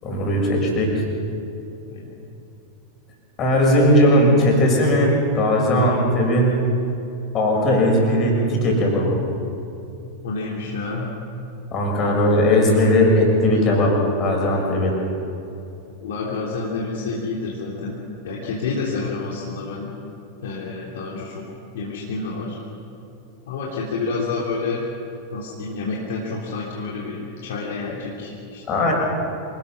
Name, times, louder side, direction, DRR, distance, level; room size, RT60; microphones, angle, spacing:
voice 1, 0.0-0.9 3.4-6.6 7.3-9.3 11.7-13.9 14.2-14.9 28.7-28.9, left 1 dB, 30° left, -1 dB, 6.5 m, -18 dB
voice 2, 10.2-11.1 15.9-19.9 20.4-21.4 21.7-22.6 23.5-24.8 25.3-28.8, left 4 dB, 55° left, -4 dB, 3.3 m, -29 dB
27.0 x 19.0 x 6.2 m, 2.8 s
figure-of-eight pair, 90°, 0 cm